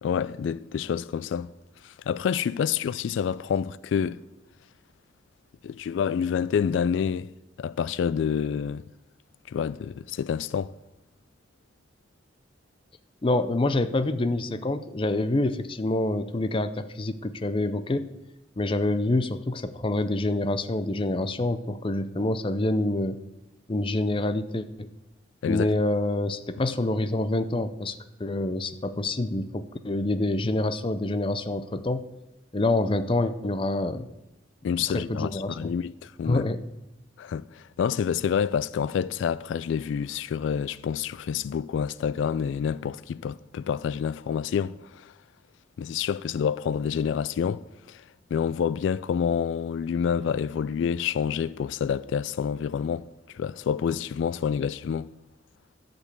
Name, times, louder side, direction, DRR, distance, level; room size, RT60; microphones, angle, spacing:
voice 1, 0.0-1.5 1.8-4.2 5.6-7.3 7.6-8.8 9.5-10.8 25.4-25.7 34.6-36.5 37.2-45.1 45.8-48.0 48.3-55.1, left 7 dB, 80° left, 0.3 m, -28 dB
voice 2, 13.2-18.1 18.6-23.2 23.7-24.9 25.5-32.0 32.5-34.1 34.9-35.6 36.3-36.6, left 2 dB, 30° left, 0.5 m, -26 dB
11.5 x 5.3 x 8.0 m
head